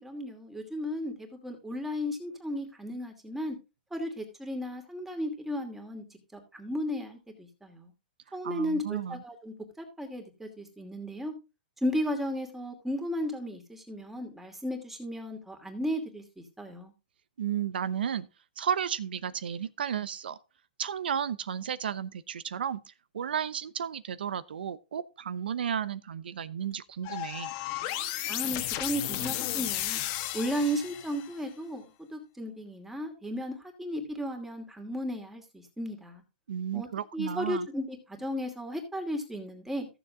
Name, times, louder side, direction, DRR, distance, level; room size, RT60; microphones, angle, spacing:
voice 1, 0.0-3.6 3.9-6.0 6.3-7.9 8.3-11.3 11.8-16.9 28.3-30.0 30.3-31.9 32.1-36.2 36.7-36.9 37.1-39.9, equal, 5° right, 2.5 m, -34 dB
voice 2, 8.4-9.2 17.4-18.3 18.6-20.4 20.8-27.5 36.5-37.7, right 8 dB, 80° right, 0.8 m, -33 dB
sound 1, 27.0-31.3, left 14 dB, 40° left, 1.5 m, -33 dB
14.5 x 7.0 x 3.7 m
hypercardioid pair, 145°, 5 cm